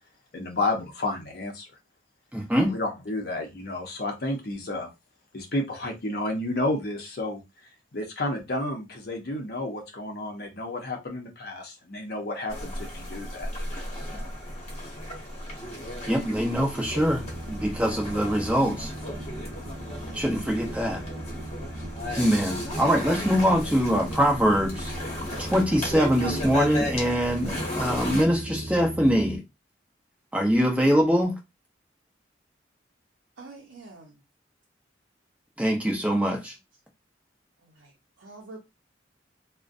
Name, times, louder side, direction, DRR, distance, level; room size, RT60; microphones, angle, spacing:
voice 1, 0.3-1.7 2.6-4.9 5.3-7.4 7.9-13.5, left 2 dB, 55° left, 0.6 m, -31 dB
voice 2, 2.3-2.7 16.1-18.9 20.1-21.0 22.1-24.9 25.4-29.4 30.3-31.3 35.6-36.5, equal, 5° right, 0.5 m, -23 dB
sound 1, 12.5-28.2, left 1 dB, 35° left, 0.9 m, -35 dB
sound 2, 16.8-29.4, right 1 dB, 45° right, 0.8 m, -38 dB
voice 3, 33.4-34.2 37.6-37.9 38.2-38.6, right 3 dB, 85° right, 0.6 m, -45 dB
2.5 x 2.1 x 2.4 m
head